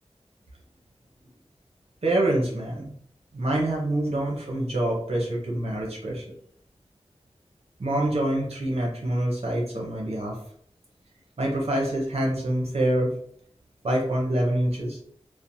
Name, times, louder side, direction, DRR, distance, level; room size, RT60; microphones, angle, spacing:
voice 1, 2.0-2.9 3.3-6.2 7.8-10.4 11.4-13.1 13.8-15.0, right 1 dB, 65° right, -2 dB, 0.7 m, -26 dB
2.8 x 2.0 x 2.6 m, 0.63 s
wide cardioid pair, 50°, 11 cm